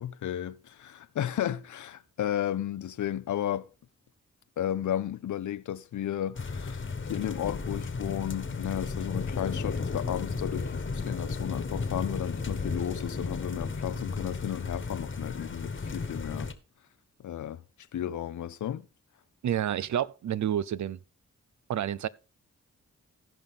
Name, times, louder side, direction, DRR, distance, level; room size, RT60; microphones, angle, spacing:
voice 1, 0.0-3.7 4.6-16.5 17.2-17.6 17.9-18.9, left 11 dB, 80° left, 0.5 m, -33 dB
sound 1, 6.4-16.5, left 4 dB, 40° left, 1.3 m, -34 dB
voice 2, 19.4-21.0 21.7-22.1, right 10 dB, 75° right, 0.6 m, -29 dB
15.0 x 5.3 x 3.6 m
cardioid pair, 55°, 29 cm